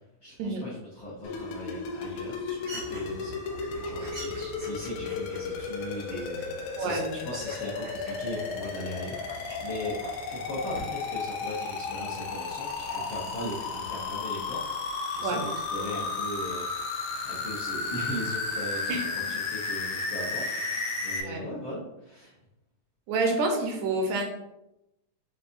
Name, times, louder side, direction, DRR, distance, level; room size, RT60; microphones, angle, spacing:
voice 1, 0.2-3.3 3.8-10.0 10.3-16.6 17.2-18.9 19.3-22.3, left 1 dB, 75° left, -6 dB, 1.1 m, -39 dB
sound 1, 1.2-21.2, left 4 dB, 90° left, 2.1 m, -34 dB
sound 2, 2.6-14.0, right 1 dB, 55° right, 0.9 m, -46 dB
voice 2, 6.8-7.1 15.2-15.4 18.9-19.0 21.2-21.5 23.1-24.3, right 3 dB, 75° right, 2 dB, 2.0 m, -28 dB
6.5 x 2.6 x 2.6 m, 0.88 s
omnidirectional pair, 3.4 m